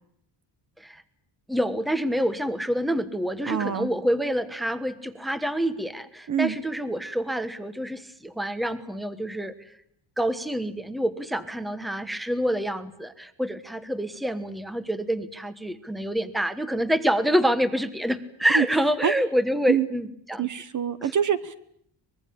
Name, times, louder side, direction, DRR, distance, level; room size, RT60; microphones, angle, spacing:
voice 1, 1.5-9.5 10.2-20.5 21.0-21.1, equal, ahead, 12 dB, 1.2 m, -27 dB
voice 2, 3.5-3.9 6.3-6.6 18.5-18.7 19.0-19.1 19.7-19.9 20.4-21.5, right 8 dB, 40° right, 13 dB, 1.1 m, -25 dB
24.5 x 21.5 x 8.6 m, 0.69 s
cardioid pair, 160°, 46 cm